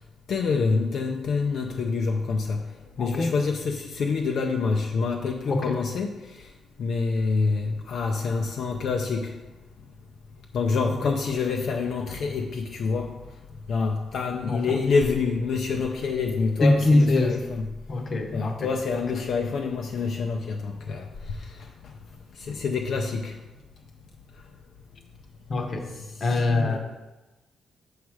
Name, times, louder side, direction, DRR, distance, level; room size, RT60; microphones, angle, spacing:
voice 1, 0.3-2.6 3.0-6.1 6.8-9.3 10.5-13.1 13.7-17.6 18.3-21.0 22.5-23.3 26.2-26.8, left 4 dB, 60° left, 3 dB, 0.5 m, -26 dB
voice 2, 3.0-3.3 5.5-5.8 10.8-10.9 14.5-14.8 16.6-17.4 17.9-18.7 25.5-25.9 26.2-26.8, left 2 dB, 35° left, 4 dB, 0.8 m, -23 dB
6.3 x 4.8 x 4.8 m, 1.1 s
cardioid pair, 145°, 0 cm